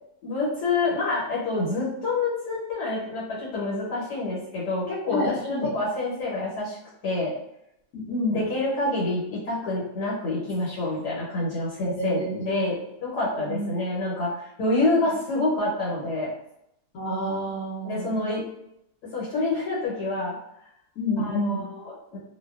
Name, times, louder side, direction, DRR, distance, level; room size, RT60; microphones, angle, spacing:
voice 1, 0.2-6.8 7.0-7.3 8.3-16.3 17.8-18.4 19.1-20.4 21.2-22.2, left 2 dB, 85° left, -6 dB, 1.5 m, -27 dB
voice 2, 5.1-5.7 7.9-8.4 11.8-12.7 13.3-13.7 16.9-18.3 21.0-21.6, left 1 dB, 65° left, -6 dB, 1.2 m, -29 dB
2.7 x 2.2 x 2.3 m, 0.81 s
omnidirectional pair, 1.7 m